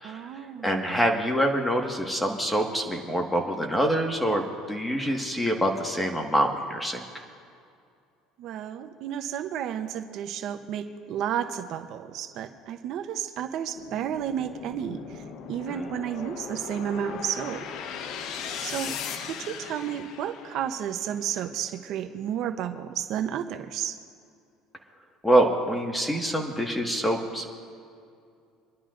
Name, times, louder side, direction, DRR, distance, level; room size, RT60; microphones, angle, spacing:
voice 1, 0.0-1.0 8.4-17.6 18.6-24.0, right 9 dB, 60° right, 8 dB, 0.8 m, -32 dB
voice 2, 0.6-4.4 4.7-7.0 15.7-15.9 25.2-27.5, right 1 dB, 5° left, 2 dB, 1.6 m, -25 dB
sound 1, 13.7-21.0, left 7 dB, 60° left, 1.0 m, -38 dB
28.0 x 11.5 x 2.6 m, 2.4 s
cardioid pair, 115°, 0 cm